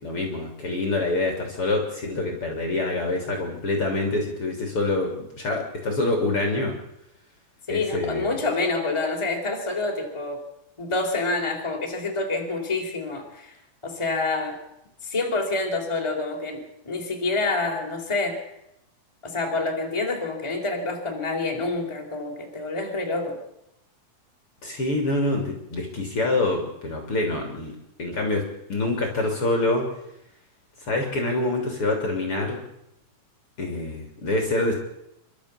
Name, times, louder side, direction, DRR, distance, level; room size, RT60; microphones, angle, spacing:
voice 1, 0.0-6.7 7.7-8.3 24.6-27.7 28.0-28.4 28.7-29.9 30.8-32.6 33.6-34.7, left 2 dB, 40° left, 2 dB, 3.8 m, -26 dB
voice 2, 7.7-10.4 10.8-13.6 13.8-14.6 15.0-18.4 19.2-23.4, left 3 dB, 10° left, 1 dB, 3.5 m, -27 dB
27.0 x 13.0 x 8.4 m, 0.83 s
omnidirectional pair, 4.2 m